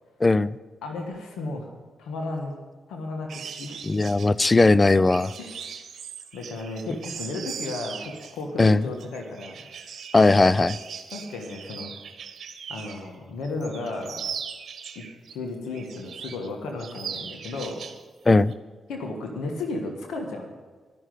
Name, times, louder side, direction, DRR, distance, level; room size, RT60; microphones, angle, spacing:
voice 1, 0.2-0.6 3.8-5.3 8.6-8.8 10.1-10.8 18.3-18.5, left 3 dB, 30° left, 19 dB, 0.4 m, -18 dB
voice 2, 0.8-1.7 2.0-2.5 2.9-3.8 4.4-4.6 5.4-5.6 6.3-9.5 11.1-11.9 12.7-14.2 14.9-15.0 15.3-17.8 18.9-20.5, left 2 dB, 85° left, 2 dB, 1.5 m, -34 dB
sound 1, 3.3-13.1 13.4-15.3 15.7-16.5 16.8-18.0 18.3-18.5, right 7 dB, 70° right, 1.1 m, -39 dB
12.5 x 6.4 x 9.3 m, 1.4 s
supercardioid pair, 55°, 0 cm